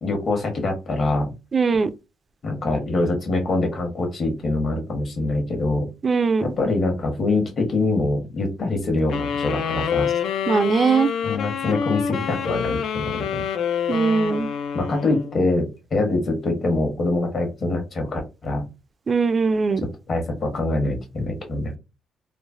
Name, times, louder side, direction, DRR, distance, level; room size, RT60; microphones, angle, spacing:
voice 1, 0.0-1.3 2.4-5.9 6.4-10.1 11.2-13.4 14.7-18.6 20.1-21.7, left 2 dB, 50° left, 1.1 m, -24 dB
voice 2, 1.5-1.9 6.0-6.5 10.5-11.1 13.9-14.5 19.1-19.8, right 4 dB, 40° right, 0.3 m, -20 dB
sound 1, 9.1-15.5, left 7 dB, 75° left, 0.4 m, -27 dB
3.1 x 2.0 x 2.5 m
cardioid pair, 90°, 0 cm